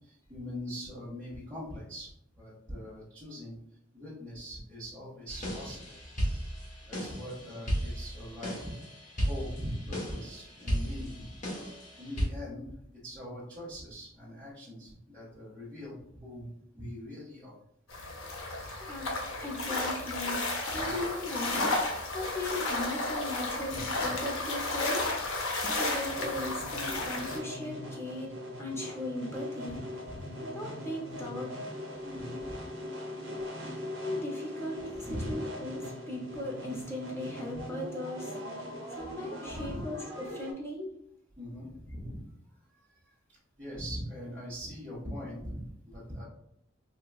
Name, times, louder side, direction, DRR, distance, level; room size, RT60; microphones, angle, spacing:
voice 1, 0.0-3.5 3.9-5.9 6.8-8.7 9.2-11.4 12.0-12.7 13.0-17.6 20.8-20.9 23.7-24.1 30.1-30.2 32.0-32.7 35.0-35.3 37.5-37.6 39.1-39.2 39.5-39.8 41.4-42.3 42.7-43.0 43.6-46.2, equal, 20° right, -12 dB, 1.3 m, -42 dB
sound 1, 5.3-12.3, equal, 35° left, 1.0 m, -35 dB
sound 2, 17.9-27.4, left 2 dB, 65° left, 0.7 m, -33 dB
voice 2, 18.8-20.5 20.7-25.1 25.7-29.8 30.4-31.5 34.0-38.3 38.9-41.0, left 1 dB, 10° left, -2 dB, 0.6 m, -38 dB
sound 3, 26.1-40.5, left 1 dB, 65° right, 0.9 m, -41 dB
4.8 x 2.3 x 2.3 m, 0.72 s
head